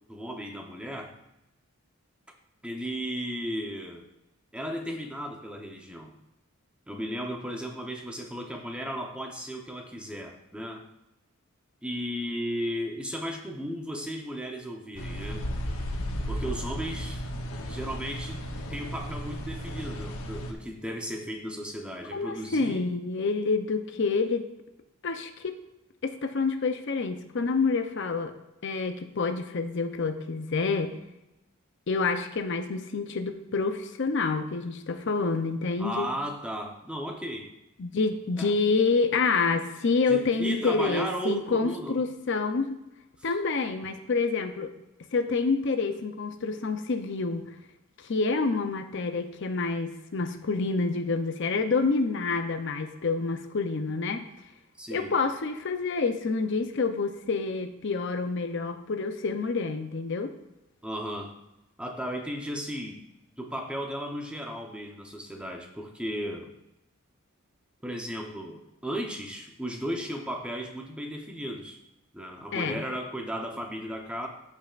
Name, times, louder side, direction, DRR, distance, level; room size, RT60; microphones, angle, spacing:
voice 1, 0.1-1.1 2.6-4.0 4.5-6.1 6.9-10.8 11.8-15.4 16.3-17.2 17.7-18.4 18.7-22.8 35.8-37.5 38.4-38.5 40.1-42.0 43.2-43.4 54.8-55.1 60.8-61.3 61.8-63.0 63.3-66.5 67.8-71.8 72.1-74.3, equal, 5° right, 2 dB, 0.8 m, -35 dB
sound 1, 15.0-20.5, equal, 70° left, 0.9 m, -34 dB
voice 2, 22.1-24.5 25.0-25.6 26.0-28.3 28.6-31.0 31.9-36.1 37.8-42.8 43.2-44.7 45.1-47.6 48.0-54.2 54.9-60.3 72.5-72.8, left 4 dB, 55° left, 8 dB, 0.6 m, -28 dB
14.5 x 5.5 x 2.5 m, 0.90 s
head